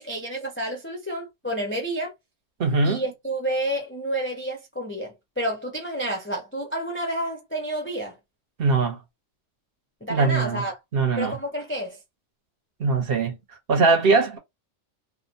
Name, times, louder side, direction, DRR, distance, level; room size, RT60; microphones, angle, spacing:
voice 1, 0.0-2.1 2.8-8.2 10.0-10.8 11.2-12.0, right 1 dB, 20° left, 0.3 m, -30 dB
voice 2, 2.6-3.0 8.6-9.0 10.1-10.6 10.9-11.4 12.8-13.4 13.7-14.4, right 4 dB, 55° right, 0.9 m, -21 dB
2.6 x 2.1 x 2.6 m
omnidirectional pair, 1.2 m